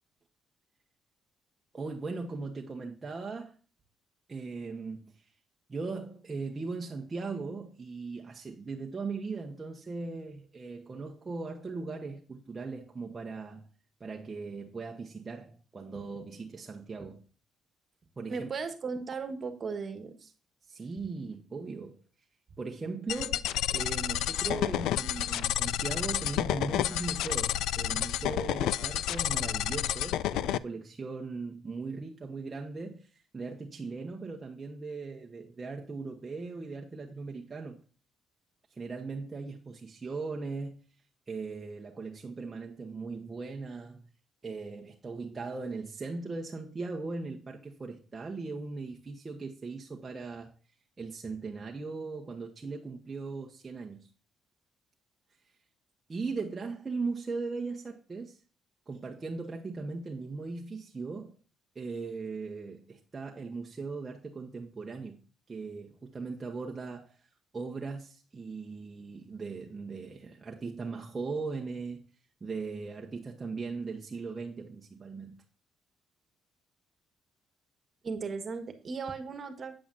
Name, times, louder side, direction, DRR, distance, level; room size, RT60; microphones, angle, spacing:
voice 1, 1.7-3.5 4.3-5.2 5.7-13.7 14.0-17.2 18.2-18.5 20.7-22.0 22.6-37.8 38.7-40.8 41.3-44.1 44.4-50.5 51.0-54.1 56.1-58.4 58.9-61.4 61.7-65.2 65.5-67.2 67.5-72.0 72.4-75.4, right 4 dB, 25° right, 1.1 m, -39 dB
voice 2, 18.3-20.3 78.0-79.7, right 5 dB, 45° right, 1.5 m, -36 dB
sound 1, 23.1-30.6, left 12 dB, 90° left, 0.3 m, -30 dB
8.7 x 8.3 x 2.6 m
cardioid pair, 105°, 0 cm